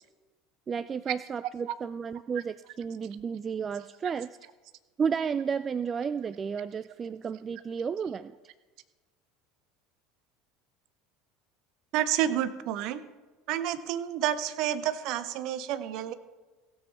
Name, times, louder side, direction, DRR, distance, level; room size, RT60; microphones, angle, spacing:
voice 1, 0.7-4.4 5.0-8.3, right 6 dB, 30° right, 14 dB, 0.3 m, -32 dB
voice 2, 11.9-13.0 13.5-16.1, right 11 dB, 60° right, 12 dB, 0.9 m, -29 dB
16.5 x 7.5 x 4.6 m, 1.3 s
hypercardioid pair, 75°, 0 cm